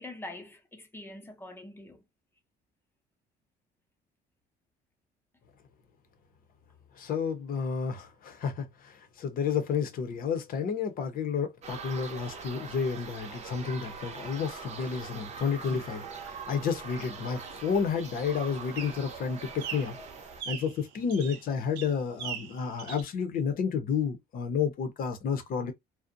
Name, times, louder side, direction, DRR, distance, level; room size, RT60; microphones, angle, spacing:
voice 1, 0.0-2.0, left 2 dB, 15° left, 0.6 m, -44 dB
voice 2, 7.0-20.0 20.5-25.7, left 6 dB, 60° left, 0.7 m, -31 dB
sound 1, 11.6-20.4, right 5 dB, 40° right, 0.6 m, -43 dB
sound 2, 13.8-23.0, right 8 dB, 85° right, 0.6 m, -45 dB
2.5 x 2.1 x 2.5 m
cardioid pair, 110°, 17 cm